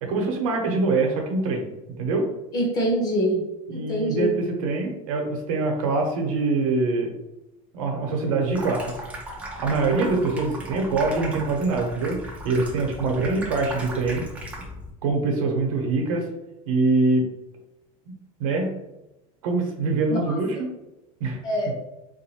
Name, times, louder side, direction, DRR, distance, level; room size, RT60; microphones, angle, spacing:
voice 1, 0.0-1.7 2.0-2.3 3.7-7.1 7.7-8.9 9.6-12.2 12.4-14.2 15.0-16.3 16.7-17.2 18.4-18.8 19.4-20.6 21.2-21.4, right 3 dB, 80° right, 2 dB, 0.9 m, -24 dB
voice 2, 2.5-3.4 3.7-4.3 20.1-20.4 21.4-21.7, right 1 dB, 20° left, -1 dB, 0.7 m, -24 dB
Water tap faucet / Sink (filling or washing), 8.4-14.9, right 1 dB, 10° right, 0.3 m, -37 dB
3.5 x 2.6 x 2.8 m, 0.95 s
supercardioid pair, 170°, 17 cm